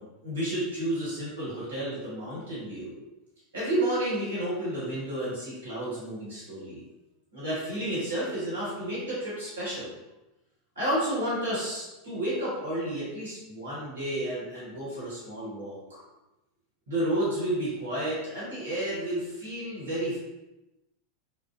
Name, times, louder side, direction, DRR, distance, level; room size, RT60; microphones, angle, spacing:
voice 1, 0.0-2.9 3.5-6.8 7.3-9.9 10.7-16.0 16.9-20.2, right 1 dB, 70° right, -8 dB, 1.1 m, -31 dB
2.4 x 2.2 x 2.4 m, 0.99 s
figure-of-eight pair, 85°, 0 cm